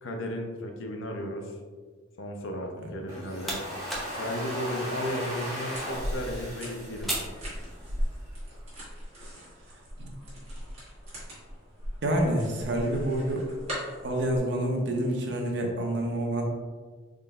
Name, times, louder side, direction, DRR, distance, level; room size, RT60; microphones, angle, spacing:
voice 1, 0.0-1.5 2.2-3.6 4.1-7.2, equal, 75° left, 3 dB, 0.6 m, -34 dB
sound 1, 2.9-8.2, right 1 dB, ahead, 0.5 m, -40 dB
Domestic sounds home sounds, 3.1-8.0, equal, 15° right, 1.1 m, -38 dB
sound 2, 5.7-14.4, equal, 30° right, 1.3 m, -38 dB
voice 2, 12.0-13.4 14.0-16.4, right 1 dB, 60° right, 1 dB, 0.6 m, -28 dB
3.8 x 3.7 x 2.2 m, 1.5 s
head